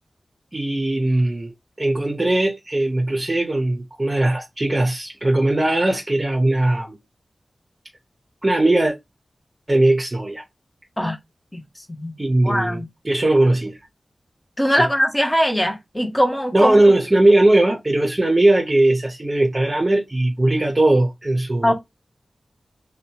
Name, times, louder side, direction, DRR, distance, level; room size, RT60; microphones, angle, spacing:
voice 1, 0.5-1.5 1.8-7.0 8.4-8.9 9.7-10.4 12.2-13.8 14.8-14.9 16.5-21.7, right 1 dB, 30° right, 0.6 m, -19 dB
voice 2, 11.5-12.1 12.4-12.8 14.6-16.8 21.6-21.7, equal, 15° left, 0.7 m, -21 dB
2.7 x 2.2 x 2.7 m
wide cardioid pair, 55°, 0 cm